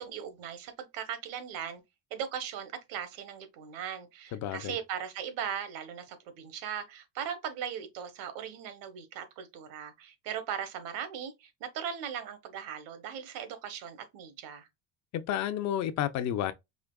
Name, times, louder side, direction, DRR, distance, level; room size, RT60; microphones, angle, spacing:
voice 1, 0.0-1.8 2.1-14.7, right 8 dB, 65° right, 1.2 m, -38 dB
voice 2, 4.3-4.7 15.1-16.5, left 11 dB, 50° left, 0.6 m, -31 dB
5.0 x 2.9 x 2.3 m
cardioid pair, 130°, 36 cm